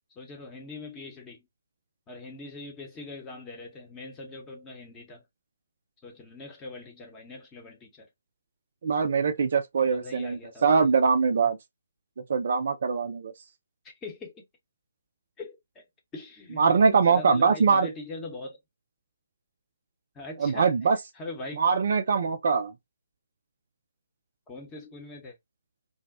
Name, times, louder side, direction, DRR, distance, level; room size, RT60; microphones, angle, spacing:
voice 1, 0.2-1.5 2.1-5.2 6.0-8.1 9.9-10.9 14.0-14.4 15.4-15.9 16.1-18.6 20.1-20.7 21.2-21.6 24.5-25.4, left 2 dB, 15° left, 0.8 m, -42 dB
voice 2, 8.8-11.6 12.3-13.3 16.6-17.9 20.4-21.0 21.6-22.7, right 5 dB, 50° right, 0.3 m, -23 dB
2.5 x 2.1 x 2.3 m
figure-of-eight pair, 140°, 0 cm